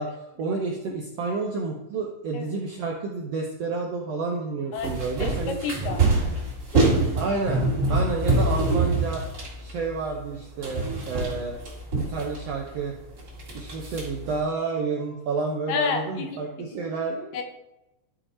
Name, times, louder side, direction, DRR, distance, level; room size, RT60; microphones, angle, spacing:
voice 1, 0.0-5.6 7.1-7.6 7.9-9.2 9.6-11.6 12.1-12.9 13.5-17.4, right 4 dB, 75° right, 0 dB, 1.4 m, -30 dB
sound 1, 4.8-10.4 10.6-12.7 13.2-14.4, right 2 dB, 35° right, 2.4 m, -25 dB
voice 2, 5.2-6.0 6.7-6.8 15.7-16.8 17.3-17.4, left 5 dB, 80° left, 5 dB, 2.6 m, -30 dB
12.0 x 4.7 x 4.3 m, 0.91 s
omnidirectional pair, 4.0 m